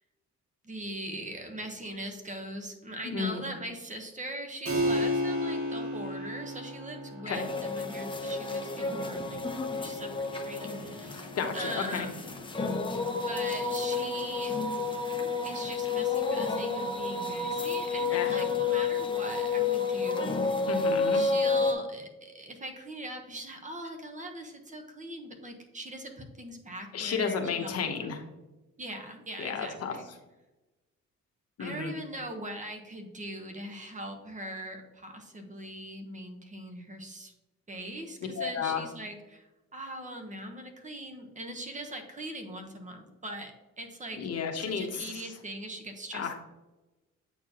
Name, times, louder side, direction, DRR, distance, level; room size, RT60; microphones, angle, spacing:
voice 1, 0.6-9.4 9.8-12.4 13.3-14.5 15.4-20.6 21.1-28.1 28.8-30.1 31.6-37.3 37.7-44.3 44.6-46.3, right 1 dB, 25° right, 4 dB, 1.1 m, -41 dB
voice 2, 3.0-3.4 7.3-7.4 11.3-12.1 18.1-18.4 20.7-21.2 26.9-28.2 29.4-30.0 31.6-31.9 38.3-38.8 44.2-45.3 46.1-46.3, left 6 dB, 55° left, 4 dB, 1.1 m, -32 dB
Keyboard (musical), 4.7-14.9, equal, 50° right, 2.0 m, -36 dB
sound 1, 7.3-21.7, left 4 dB, 15° left, 0.8 m, -30 dB
8.3 x 4.4 x 3.0 m, 1.1 s
cardioid pair, 95°, 29 cm